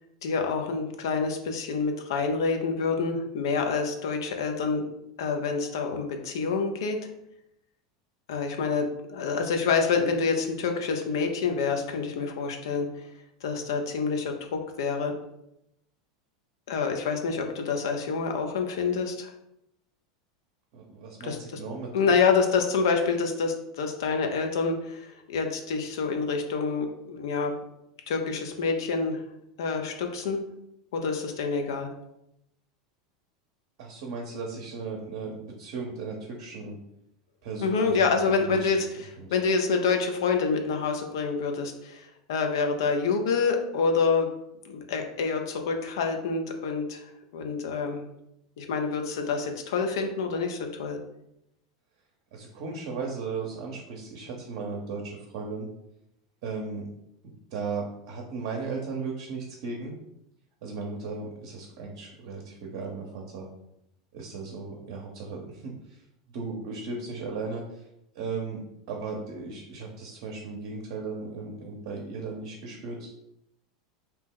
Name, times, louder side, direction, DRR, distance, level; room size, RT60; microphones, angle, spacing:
voice 1, 0.2-4.8 5.2-7.0 8.3-12.9 13.4-15.1 16.7-19.3 21.2-21.4 21.9-27.5 28.1-29.2 29.6-30.4 30.9-31.9 37.6-44.3 44.6-47.0 47.3-48.0 48.6-51.0, left 5 dB, 70° left, 4 dB, 0.5 m, -27 dB
voice 2, 20.7-22.1 33.8-36.8 37.4-38.7 39.2-39.4 52.3-55.7 56.4-56.8 57.5-59.9 60.6-63.5 64.1-67.9 68.1-68.6 68.9-73.2, right 4 dB, 60° right, 0 dB, 0.6 m, -36 dB
2.8 x 2.0 x 3.6 m, 0.80 s
hypercardioid pair, 90°, 2 cm